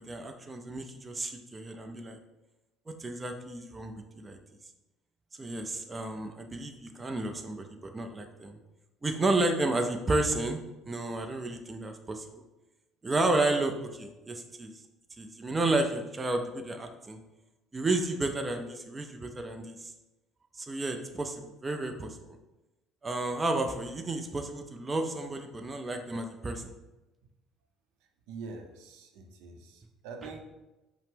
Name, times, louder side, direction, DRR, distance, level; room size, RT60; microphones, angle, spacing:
voice 1, 0.1-2.2 2.9-4.4 5.4-8.6 9.0-10.6 10.9-12.2 13.0-14.7 15.2-17.2 17.7-19.9 20.5-22.4 23.0-26.7, right 2 dB, 20° right, 5 dB, 0.4 m, -32 dB
voice 2, 28.3-30.4, right 4 dB, 85° right, 4 dB, 0.6 m, -44 dB
5.3 x 2.0 x 3.6 m, 1.0 s
cardioid pair, 115°, 0 cm